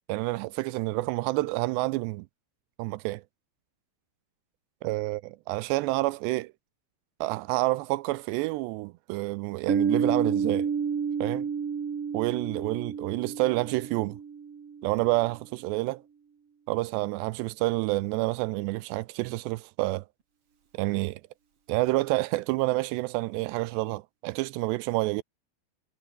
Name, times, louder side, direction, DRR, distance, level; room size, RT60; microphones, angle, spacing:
voice 1, 0.1-2.3 2.8-3.2 4.8-6.5 7.2-10.7 11.2-11.5 12.1-14.2 14.8-16.0 16.7-20.1 20.7-21.2 21.7-25.2, right 20 dB, 80° right, 2.7 m, -28 dB
Piano, 9.7-15.1, right 6 dB, 40° right, 3.0 m, -30 dB
omnidirectional pair, 5.1 m